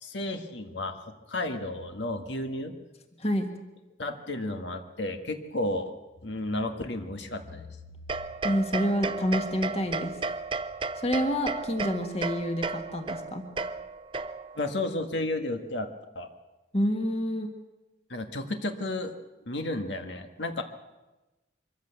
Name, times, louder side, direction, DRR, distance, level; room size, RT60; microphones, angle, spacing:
voice 1, 0.0-2.7 4.0-6.0 6.2-7.7 14.6-15.9 16.2-16.3 18.1-19.1 19.5-20.6, left 2 dB, 75° left, 6 dB, 1.7 m, -32 dB
voice 2, 3.2-3.5 8.4-10.1 11.0-13.5 16.7-17.5, equal, 35° left, 5 dB, 1.8 m, -28 dB
sound 1, 8.1-14.7, right 3 dB, 25° right, 0.6 m, -34 dB
24.0 x 14.5 x 8.2 m, 1.1 s
head